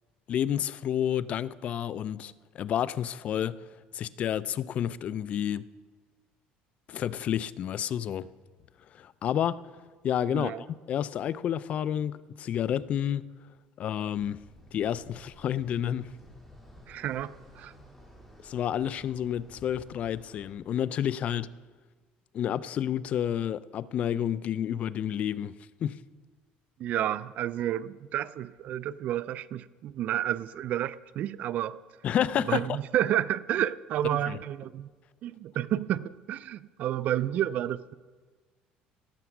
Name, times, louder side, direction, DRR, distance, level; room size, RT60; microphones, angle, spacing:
voice 1, 0.3-3.5 3.9-5.7 6.9-8.3 8.9-9.6 10.0-13.3 13.8-14.4 14.7-16.1 18.4-21.5 22.3-25.5 25.8-26.0 32.0-32.8 34.3-34.4, left 10 dB, 45° left, 0.4 m, -30 dB
voice 2, 10.3-10.6 16.9-17.7 26.8-31.8 32.5-34.9 35.2-37.9, right 12 dB, 50° right, 0.4 m, -30 dB
sound 1, 14.1-20.5, equal, 5° left, 3.5 m, -53 dB
17.5 x 7.0 x 6.0 m
cardioid pair, 135°, 3 cm